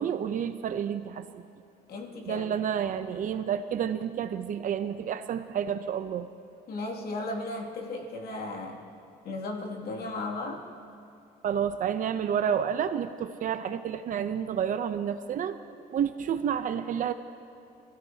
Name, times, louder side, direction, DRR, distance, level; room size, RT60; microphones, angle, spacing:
voice 1, 0.0-1.4 2.3-6.3 11.4-17.1, right 8 dB, 50° right, 10 dB, 0.7 m, -30 dB
voice 2, 1.9-2.4 6.7-8.8 9.2-10.6, left 2 dB, 65° left, 0 dB, 2.5 m, -35 dB
26.5 x 16.0 x 2.8 m, 2.6 s
cardioid pair, 110°, 17 cm